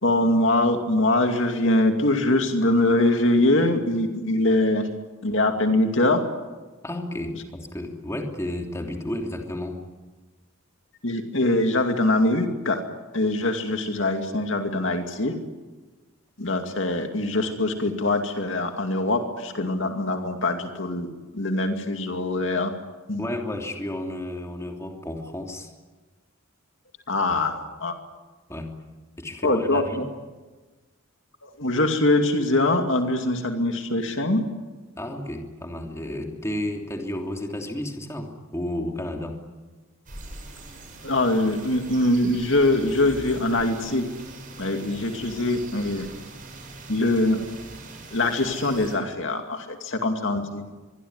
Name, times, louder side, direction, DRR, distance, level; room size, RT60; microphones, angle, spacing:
voice 1, 0.0-4.9 5.2-6.2 11.0-12.8 13.1-15.3 16.4-21.1 21.3-22.7 23.1-23.2 27.1-27.9 29.4-30.0 31.4-34.5 41.0-44.0 44.6-46.1 46.9-47.4 48.1-50.6, left 2 dB, 60° left, 5 dB, 2.5 m, -23 dB
voice 2, 6.8-9.8 23.2-25.7 27.3-27.4 28.5-28.7 29.2-30.0 35.0-39.4, left 1 dB, 15° left, 2 dB, 3.1 m, -32 dB
sound 1, 40.1-49.0, right 2 dB, 40° right, 7.3 m, -42 dB
25.0 x 22.5 x 9.6 m, 1.3 s
head